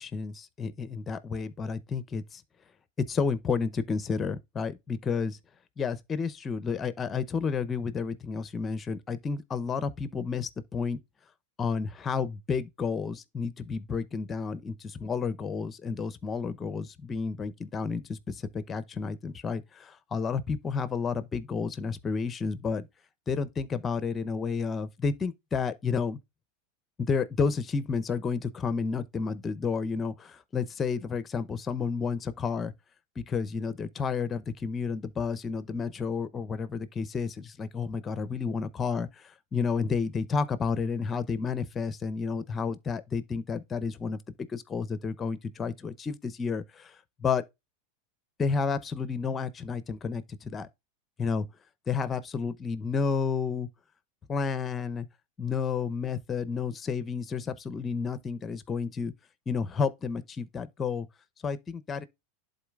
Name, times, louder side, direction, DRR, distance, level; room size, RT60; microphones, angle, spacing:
voice 1, 0.0-2.4 3.1-5.4 5.8-11.0 11.6-22.9 23.3-26.2 27.0-32.7 33.2-39.1 39.5-44.2 44.5-46.9 47.2-47.4 48.4-50.7 51.2-51.5 51.9-53.7 54.3-55.1 55.4-59.1 59.5-61.1 61.4-62.0, left 5 dB, 25° left, 0.7 m, -31 dB
11.5 x 4.0 x 2.4 m
hypercardioid pair, 115°, 0 cm